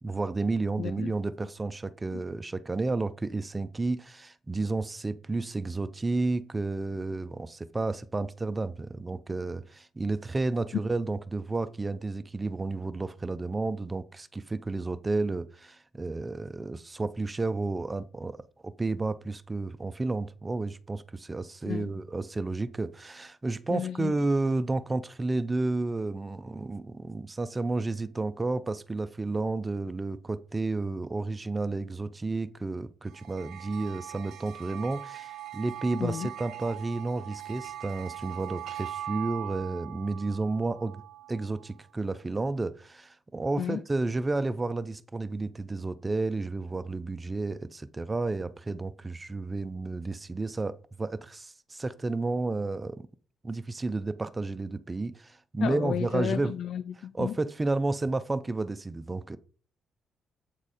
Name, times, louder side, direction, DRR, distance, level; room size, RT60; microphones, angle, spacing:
voice 1, 0.0-18.4 18.6-41.0 41.3-53.1 53.4-56.5 57.1-59.4, right 3 dB, 15° right, 0.4 m, -31 dB
voice 2, 0.8-1.1 2.1-2.2 21.6-21.9 23.7-24.1 36.0-36.3 43.6-43.8 55.6-57.4, left 9 dB, 65° left, 0.4 m, -33 dB
sound 1, 33.1-41.7, right 12 dB, 55° right, 0.7 m, -41 dB
8.1 x 4.2 x 4.9 m
cardioid pair, 170°, 0 cm